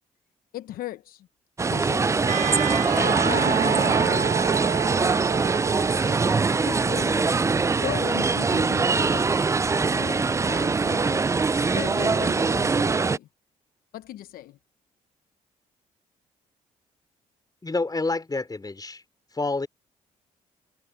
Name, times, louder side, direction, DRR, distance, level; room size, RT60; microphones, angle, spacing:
voice 1, 0.5-1.3 1.7-2.5 2.9-4.3 5.9-7.4 7.8-9.6 9.9-11.3 11.5-13.3 13.9-14.6, left 14 dB, 75° left, 1.0 m, -37 dB
sound 1, 1.6-13.2, right 4 dB, 20° right, 0.4 m, -23 dB
Wind instrument woodwind instrument, 2.3-6.3, right 10 dB, 60° right, 1.4 m, -29 dB
voice 2, 17.6-19.0 19.3-19.7, left 3 dB, 25° left, 4.5 m, -28 dB
supercardioid pair, 55°, 15 cm